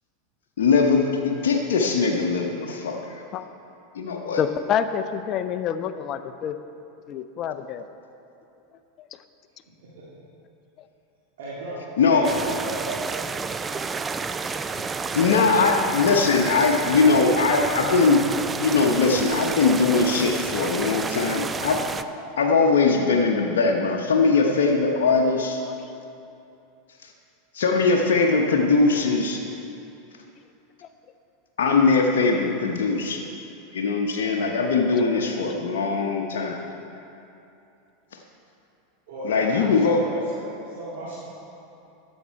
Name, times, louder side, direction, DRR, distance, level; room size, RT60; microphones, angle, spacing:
voice 1, 0.6-3.2 3.9-4.4 12.0-12.3 15.1-18.2 18.6-21.8 22.4-25.6 27.5-29.4 31.6-33.3 33.7-36.6 39.2-40.0, left 4 dB, 70° left, 0 dB, 0.8 m, -21 dB
voice 2, 4.4-6.6 7.1-7.8 9.0-9.1 25.8-25.9, left 8 dB, 40° left, 10 dB, 0.6 m, -27 dB
voice 3, 11.4-13.0 39.1-41.2, right 2 dB, 65° right, -7 dB, 1.9 m, -35 dB
sound 1, 12.2-22.0, right 4 dB, 20° right, 0.4 m, -30 dB
12.0 x 7.3 x 4.7 m, 2.8 s
hypercardioid pair, 85°, 0 cm